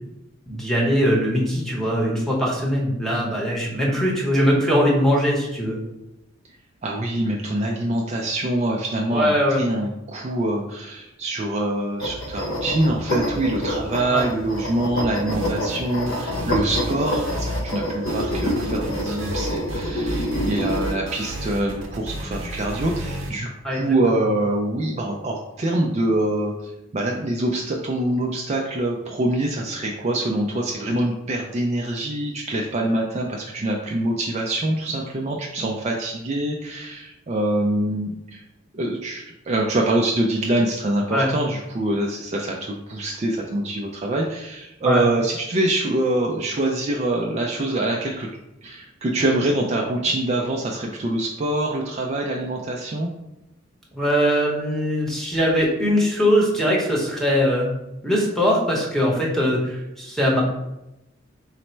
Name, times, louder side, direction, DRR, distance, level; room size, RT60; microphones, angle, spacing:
voice 1, 0.5-5.8 9.1-9.6 14.1-14.2 23.6-24.2 41.1-41.3 44.8-45.1 53.9-57.7 58.0-60.4, equal, ahead, -3 dB, 0.9 m, -21 dB
voice 2, 6.8-38.4 38.7-48.3 48.6-53.1, right 1 dB, 35° right, 0 dB, 0.3 m, -25 dB
sound 1, 12.0-20.9, equal, 70° left, 0.5 m, -27 dB
sound 2, 15.3-15.8 16.1-17.8 18.1-23.3, equal, 80° right, 0.7 m, -32 dB
4.0 x 2.1 x 4.3 m, 0.92 s
head